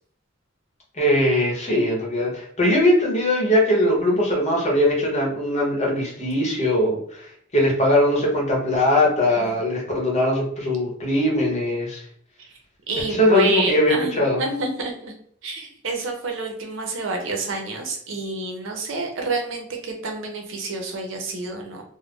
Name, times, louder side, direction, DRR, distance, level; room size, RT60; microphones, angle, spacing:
voice 1, 1.0-7.2 7.5-12.0 13.1-14.4, left 1 dB, 35° left, -2 dB, 0.9 m, -20 dB
voice 2, 12.9-15.1 15.4-21.8, right 3 dB, 75° right, 2 dB, 0.6 m, -28 dB
2.5 x 2.1 x 3.5 m, 0.64 s
head